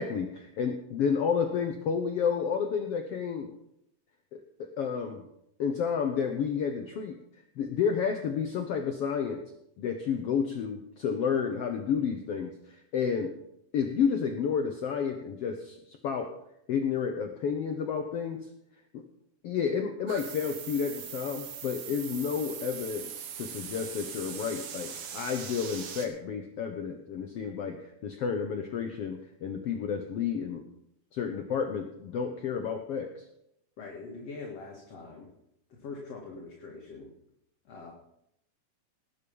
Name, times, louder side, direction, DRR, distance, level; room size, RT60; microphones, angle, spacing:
voice 1, 0.0-3.5 4.3-5.3 5.6-7.2 7.6-9.4 9.8-13.3 13.7-16.3 16.7-18.5 18.9-19.0 19.4-30.6 31.1-33.2, left 6 dB, 90° left, 5 dB, 1.3 m, -31 dB
sound 1, 20.1-26.1, right 8 dB, 90° right, 3.4 m, -41 dB
voice 2, 33.8-35.3 35.7-37.1 37.6-37.9, left 4 dB, 50° left, -2 dB, 2.8 m, -43 dB
19.0 x 8.5 x 5.4 m, 0.79 s
omnidirectional pair, 4.1 m